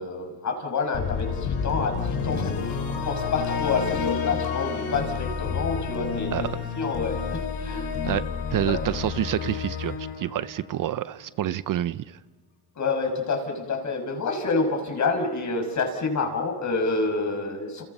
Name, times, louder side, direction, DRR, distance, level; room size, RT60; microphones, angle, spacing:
voice 1, 0.0-6.5 6.8-7.9 8.7-8.8 12.8-17.8, left 4 dB, 40° left, 5 dB, 5.9 m, -28 dB
sound 1, 0.9-11.1, left 6 dB, 60° left, 4.6 m, -30 dB
voice 2, 8.5-12.2, right 12 dB, 50° right, 15 dB, 0.7 m, -28 dB
30.0 x 29.5 x 5.5 m, 1.5 s
cardioid pair, 110°, 43 cm